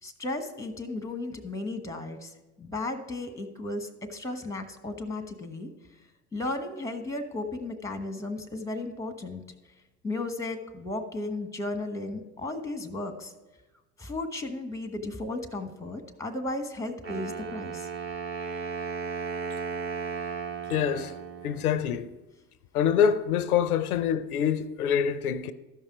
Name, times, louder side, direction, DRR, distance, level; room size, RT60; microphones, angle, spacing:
voice 1, 0.0-5.7 6.3-9.4 10.0-13.3 14.0-17.9, left 2 dB, 5° left, 1.2 m, -35 dB
Wind instrument woodwind instrument, 17.0-22.0, right 5 dB, 30° right, 2.4 m, -35 dB
voice 2, 20.7-21.2 21.4-22.1 22.7-25.5, left 8 dB, 85° left, 0.6 m, -25 dB
13.0 x 5.5 x 4.9 m
hypercardioid pair, 75°, 43 cm